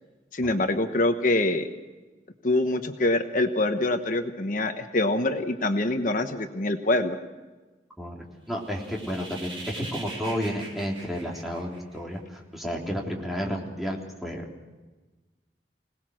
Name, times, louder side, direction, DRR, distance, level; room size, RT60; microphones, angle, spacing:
voice 1, 0.3-1.7 2.4-7.2, left 2 dB, 50° left, 7 dB, 1.2 m, -25 dB
voice 2, 8.5-14.5, equal, ahead, -2 dB, 3.4 m, -32 dB
sound 1, 8.6-12.2, right 2 dB, 30° right, 6.0 m, -41 dB
26.0 x 19.0 x 6.3 m, 1.2 s
head